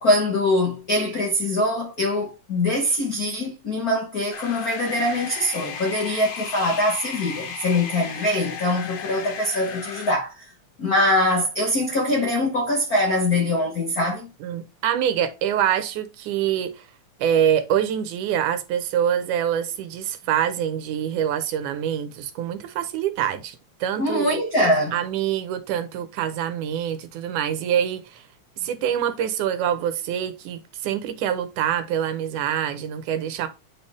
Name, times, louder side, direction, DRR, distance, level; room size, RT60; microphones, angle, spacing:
voice 1, 0.0-10.3 10.8-14.3 24.0-25.0, left 1 dB, 75° left, 0.8 m, -23 dB
sound 1, 4.3-10.1, left 7 dB, 90° left, 2.9 m, -35 dB
voice 2, 14.4-16.9 17.2-24.4 24.9-28.2 28.6-33.5, right 9 dB, 85° right, 2.4 m, -25 dB
8.6 x 4.2 x 3.4 m
omnidirectional pair, 3.5 m